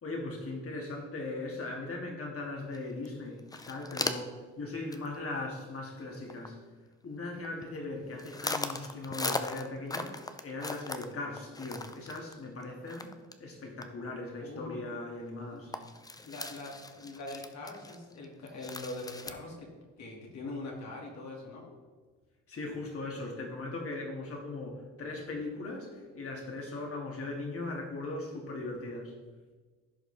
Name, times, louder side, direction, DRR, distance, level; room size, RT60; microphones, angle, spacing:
voice 1, 0.0-6.6 7.0-10.1 10.4-13.1 13.4-15.7 22.5-29.1, left 2 dB, 50° left, 0 dB, 2.5 m, -39 dB
sound 1, 2.7-2.8 3.0-3.1 3.4-4.4 4.9-5.2 5.5-5.6 6.0-6.5 7.2-7.8 8.2-13.5 13.8-13.9 14.3-14.4 14.9-15.0 15.3-15.4 15.7-19.3, left 2 dB, 10° left, 0.6 m, -38 dB
voice 2, 14.4-14.9 15.5-15.6 16.2-19.7 20.0-21.7, left 2 dB, 65° left, -1 dB, 2.6 m, -42 dB
15.5 x 5.2 x 3.5 m, 1.4 s
cardioid pair, 90°, 30 cm